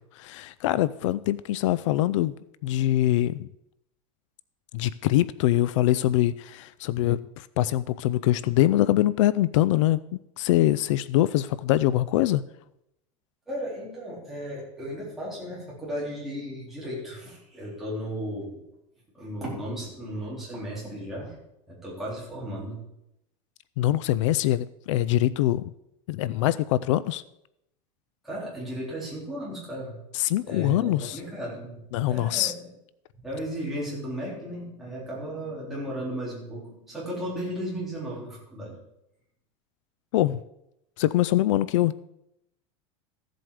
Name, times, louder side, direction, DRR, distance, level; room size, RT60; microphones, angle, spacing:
voice 1, 0.1-2.3 2.6-3.5 4.7-10.0 10.4-12.4 23.8-25.7 26.1-27.2 30.1-31.2 31.9-32.5 40.1-40.4 41.0-41.9, left 14 dB, 75° left, 17 dB, 0.4 m, -23 dB
voice 2, 13.5-18.6 19.1-21.4 21.7-22.8 28.2-30.0 30.4-31.8 32.0-32.7 33.2-38.8, equal, ahead, -7 dB, 4.0 m, -35 dB
14.5 x 7.7 x 4.9 m, 0.82 s
supercardioid pair, 175°, 16 cm